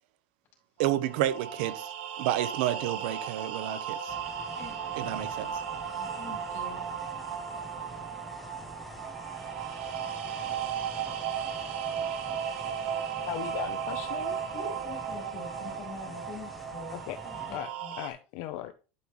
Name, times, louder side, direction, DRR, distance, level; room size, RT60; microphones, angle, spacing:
voice 1, 0.8-1.9 2.2-4.2 5.0-5.5, right 13 dB, 70° right, 0.8 m, -30 dB
sound 1, 0.8-18.1, right 8 dB, 90° right, 1.5 m, -36 dB
sound 2, 4.1-17.6, left 1 dB, ahead, 1.3 m, -46 dB
voice 2, 4.6-5.3 5.9-6.9 14.5-17.9, left 4 dB, 40° left, 4.3 m, -45 dB
voice 3, 13.3-14.4 16.9-17.2 17.5-17.7 18.0-18.7, left 14 dB, 60° left, 0.7 m, -37 dB
11.0 x 5.5 x 3.1 m
supercardioid pair, 150°, 6 cm